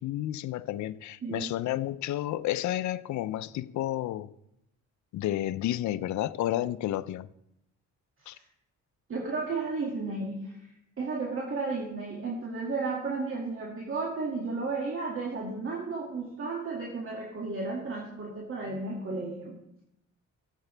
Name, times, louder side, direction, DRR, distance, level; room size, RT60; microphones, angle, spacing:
voice 1, 0.0-4.3 5.1-7.3 8.3-8.4, left 13 dB, 70° left, 0.5 m, -31 dB
voice 2, 9.1-10.6 11.0-19.5, right 3 dB, 45° right, 2.2 m, -33 dB
15.0 x 8.2 x 3.3 m
cardioid pair, 90°, 30 cm